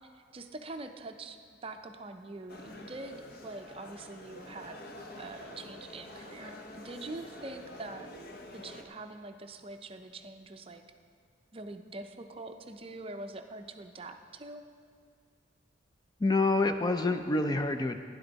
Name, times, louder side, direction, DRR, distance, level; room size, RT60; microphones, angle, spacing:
voice 1, 0.1-4.8 5.2-8.1 8.5-10.8 11.5-14.6, right 2 dB, 30° right, 7 dB, 0.5 m, -44 dB
sound 1, 2.5-8.8, left 1 dB, 55° left, 1.0 m, -47 dB
voice 2, 16.2-18.0, left 2 dB, 20° left, 7 dB, 0.4 m, -27 dB
15.0 x 10.5 x 4.0 m, 2.1 s
head